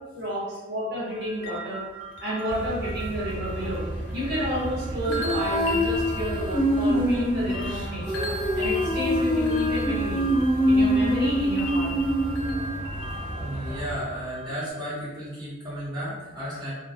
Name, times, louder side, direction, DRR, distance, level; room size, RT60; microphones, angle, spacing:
voice 1, 0.1-1.9 2.2-3.8 4.1-10.3 10.7-11.9, equal, 60° right, -8 dB, 0.8 m, -31 dB
sound 1, 1.1-14.7, equal, 90° left, 0.4 m, -38 dB
sound 2, 2.5-14.0, right 1 dB, 40° right, 0.5 m, -34 dB
Female singing, 5.1-12.8, equal, 25° left, 0.6 m, -24 dB
voice 2, 13.4-16.7, equal, 25° right, -10 dB, 0.9 m, -33 dB
2.2 x 2.1 x 2.7 m, 1.2 s
head